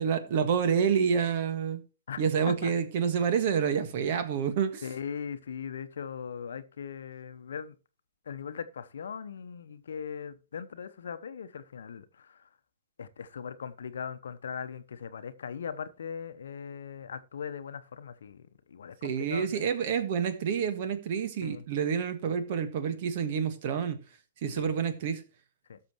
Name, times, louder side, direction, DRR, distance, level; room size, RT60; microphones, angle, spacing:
voice 1, 0.0-1.8 2.2-4.8 19.0-24.0 24.4-25.2, right 7 dB, 45° right, 1.6 m, -28 dB
voice 2, 2.1-2.7 4.8-7.8 8.3-12.5 13.0-19.6 21.4-21.6 24.6-24.7 25.7-25.8, left 7 dB, 60° left, 0.9 m, -39 dB
18.0 x 6.8 x 3.1 m
figure-of-eight pair, 115°, 0 cm